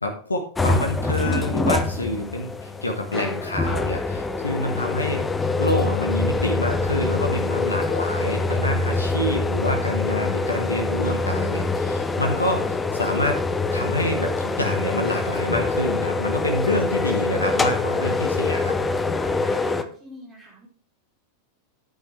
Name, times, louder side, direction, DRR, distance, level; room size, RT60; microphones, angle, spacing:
voice 1, 0.0-5.2 5.6-13.4 13.7-18.7, left 1 dB, 80° left, 4 dB, 1.4 m, -27 dB
sound 1, 0.6-19.8, left 3 dB, 15° left, 0.9 m, -24 dB
voice 2, 19.4-20.7, equal, 15° right, -2 dB, 4.9 m, -44 dB
10.5 x 9.2 x 3.4 m, 0.41 s
figure-of-eight pair, 90°, 0 cm